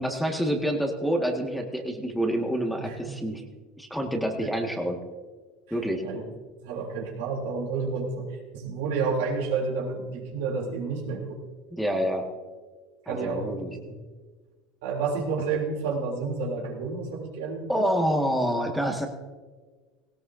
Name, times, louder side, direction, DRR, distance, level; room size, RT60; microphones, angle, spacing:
voice 1, 0.0-3.4 3.8-5.0 5.7-6.0 11.7-12.2 13.1-13.8 17.7-19.1, equal, ahead, 2 dB, 1.8 m, -27 dB
voice 2, 2.8-3.1 4.4-4.5 6.0-6.2 6.6-11.4 13.0-13.5 13.8-13.9 14.8-17.9, right 4 dB, 80° right, -2 dB, 3.3 m, -30 dB
18.0 x 17.0 x 2.7 m, 1.4 s
supercardioid pair, 95°, 0 cm